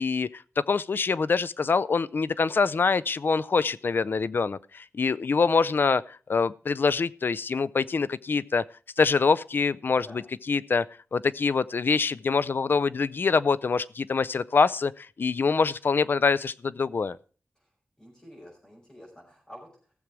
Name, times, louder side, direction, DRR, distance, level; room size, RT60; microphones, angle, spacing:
voice 1, 0.0-8.6 9.0-10.9 11.1-17.2, left 4 dB, 55° left, 0.4 m, -25 dB
voice 2, 18.0-19.9, equal, 20° left, 5.3 m, -49 dB
15.5 x 7.4 x 4.7 m
wide cardioid pair, 90°, 4 cm